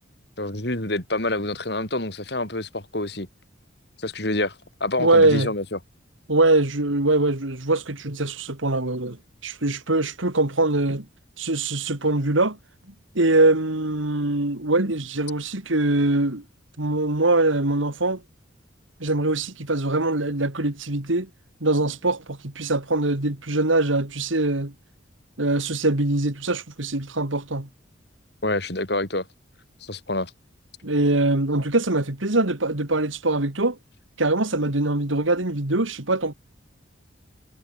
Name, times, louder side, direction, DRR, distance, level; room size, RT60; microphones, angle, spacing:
voice 1, 0.4-3.3 4.0-5.8 28.4-29.3 29.8-30.3, left 2 dB, 55° left, 3.5 m, -27 dB
voice 2, 5.0-5.5 6.3-9.2 9.4-11.1 11.4-12.6 13.1-16.4 16.8-18.2 19.0-21.3 21.6-24.7 25.4-27.7 30.8-33.8 34.2-36.3, right 2 dB, 85° right, 2.6 m, -22 dB
head